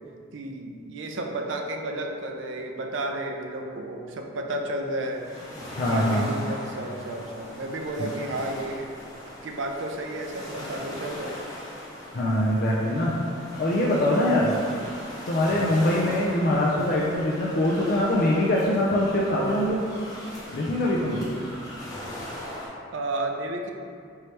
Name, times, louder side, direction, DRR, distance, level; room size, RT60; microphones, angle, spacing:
voice 1, 0.3-5.2 5.9-8.9 9.4-11.4 16.0-16.2 22.9-23.7, right 1 dB, 70° right, 3 dB, 0.5 m, -32 dB
sound 1, 4.8-22.7, left 1 dB, 20° left, 0.9 m, -40 dB
voice 2, 5.7-6.2 12.1-13.1 13.6-14.5 15.3-19.8 20.5-21.3, left 1 dB, 50° left, -4 dB, 0.4 m, -23 dB
4.6 x 3.0 x 3.1 m, 2.4 s
head